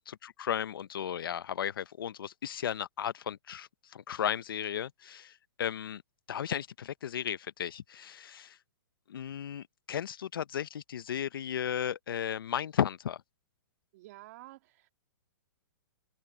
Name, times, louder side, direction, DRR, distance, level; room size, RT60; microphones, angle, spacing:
voice 1, 0.1-6.0 6.3-8.6 9.1-13.2, left 9 dB, 80° left, 0.7 m, -35 dB
voice 2, 13.9-14.9, right 18 dB, 45° right, 2.6 m, -51 dB
hypercardioid pair, 150°, 12 cm